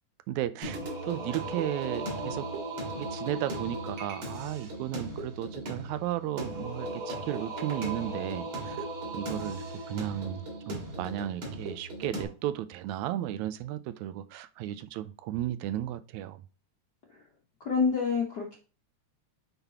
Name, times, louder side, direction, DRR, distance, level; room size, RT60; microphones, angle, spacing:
voice 1, 0.3-2.5 3.0-8.9 9.1-16.4, right 13 dB, 85° right, 1.9 m, -34 dB
Singing, 0.6-12.2, right 2 dB, 45° right, 2.9 m, -37 dB
voice 2, 17.6-18.6, left 5 dB, 65° left, 1.0 m, -27 dB
8.9 x 4.0 x 2.9 m
omnidirectional pair, 3.3 m